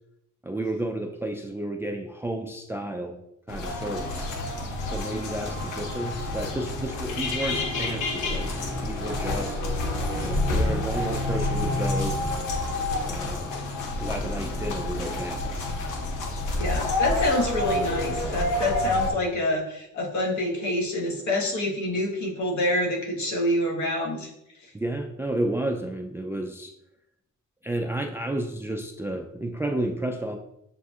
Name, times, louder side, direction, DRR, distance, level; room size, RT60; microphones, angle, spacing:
voice 1, 0.4-3.2 3.5-4.3 4.9-9.6 10.2-12.2 13.0-13.5 14.0-15.6 24.7-26.7 27.6-30.3, right 1 dB, 10° right, 3 dB, 0.3 m, -32 dB
sound 1, 3.5-19.1, left 2 dB, 80° left, 0.9 m, -28 dB
voice 2, 16.5-24.3, left 1 dB, 65° left, -2 dB, 1.5 m, -27 dB
7.3 x 2.6 x 2.4 m, 0.82 s
cardioid pair, 90°, 30 cm